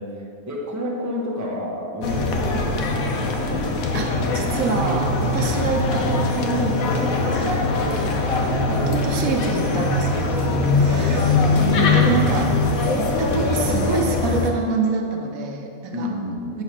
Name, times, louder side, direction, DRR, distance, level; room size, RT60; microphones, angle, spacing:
voice 1, 0.0-3.7 8.7-8.9 10.8-11.2 15.9-16.6, left 1 dB, 15° right, -3 dB, 0.7 m, -30 dB
sound 1, 2.0-14.5, left 3 dB, 85° left, 1.2 m, -21 dB
voice 2, 3.9-8.2 8.9-12.6 12.9-16.1 16.5-16.6, right 3 dB, 80° right, 3 dB, 1.2 m, -27 dB
8.2 x 3.2 x 5.8 m, 2.6 s
omnidirectional pair, 1.4 m